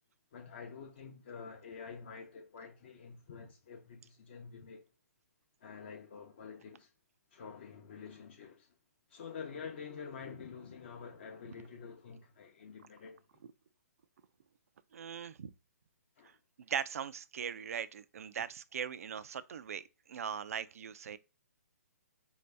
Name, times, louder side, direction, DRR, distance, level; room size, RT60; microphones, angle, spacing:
voice 1, 0.3-4.9 5.6-6.9 7.3-8.7 9.1-13.2 16.2-16.4, left 6 dB, 40° left, 0.6 m, -48 dB
voice 2, 14.9-15.5 16.6-21.2, right 8 dB, 60° right, 0.4 m, -40 dB
4.4 x 2.7 x 3.3 m
hypercardioid pair, 165°, 9 cm